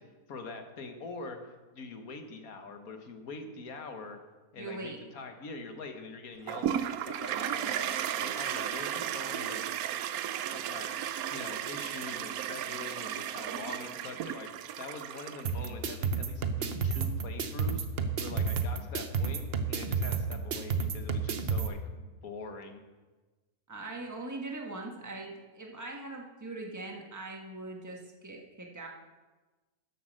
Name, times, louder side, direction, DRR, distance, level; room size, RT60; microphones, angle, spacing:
voice 1, 0.3-4.2 4.5-9.6 10.5-10.9 11.3-14.5 14.8-17.9 18.2-22.8, left 3 dB, 70° left, 6 dB, 1.7 m, -44 dB
voice 2, 4.6-5.0 23.7-28.9, right 2 dB, 10° right, 1 dB, 1.4 m, -41 dB
Toilet flush, 6.5-15.7, right 10 dB, 75° right, 1.1 m, -34 dB
sound 1, 15.4-21.7, right 5 dB, 50° right, 0.9 m, -31 dB
11.5 x 7.9 x 6.4 m, 1.2 s
omnidirectional pair, 1.6 m